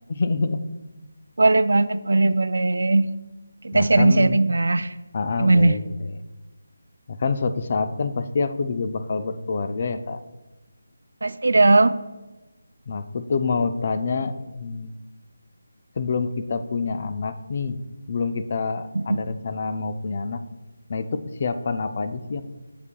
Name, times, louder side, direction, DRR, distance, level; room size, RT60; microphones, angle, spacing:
voice 1, 0.1-0.6 3.7-4.4 5.1-6.2 7.1-10.2 12.9-15.0 16.0-17.8 18.1-20.4 20.9-22.4, left 4 dB, 40° left, 9 dB, 0.4 m, -27 dB
voice 2, 1.4-3.1 3.6-4.9 5.4-5.7 11.2-12.0 18.9-19.2, right 2 dB, 75° right, 13 dB, 0.3 m, -18 dB
8.2 x 6.7 x 2.2 m, 1.1 s
figure-of-eight pair, 165°, 0 cm